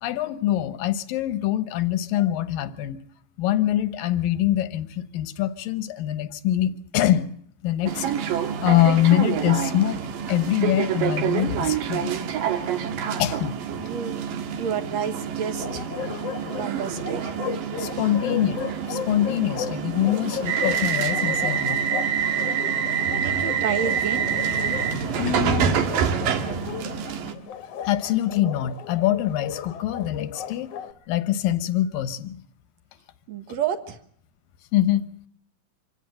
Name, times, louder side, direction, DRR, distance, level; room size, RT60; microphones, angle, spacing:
voice 1, 0.0-3.0 3.4-7.3 7.6-10.0 10.3-12.2 13.2-13.6 17.8-21.8 25.2-25.8 27.8-30.7 31.1-32.4 34.7-35.0, left 12 dB, 85° left, 2.8 m, -24 dB
sound 1, 7.9-27.3, right 7 dB, 80° right, 3.3 m, -27 dB
voice 2, 13.7-14.2 14.6-15.9 16.6-17.4 23.2-24.3 33.3-34.0, right 8 dB, 60° right, 2.2 m, -30 dB
Bark, 15.6-30.9, left 8 dB, 60° left, 1.8 m, -36 dB
25.5 x 16.0 x 7.7 m
omnidirectional pair, 3.9 m